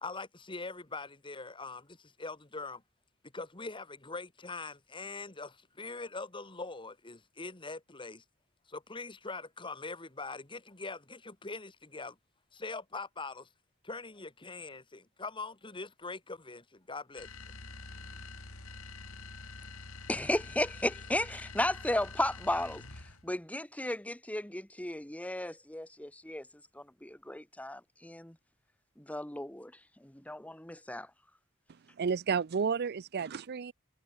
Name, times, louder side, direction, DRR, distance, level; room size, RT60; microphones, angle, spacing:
voice 1, 0.0-2.8 3.3-8.2 8.7-12.2 12.5-13.5 13.8-17.4, left 3 dB, 25° left, 2.0 m, -42 dB
sound 1, 17.2-23.3, left 3 dB, 85° left, 5.9 m, -46 dB
voice 2, 20.1-22.8 23.2-26.4 27.0-28.3 29.1-29.7 30.3-31.1, left 1 dB, 5° left, 1.5 m, -34 dB
voice 3, 32.0-33.7, right 6 dB, 50° right, 0.5 m, -31 dB
head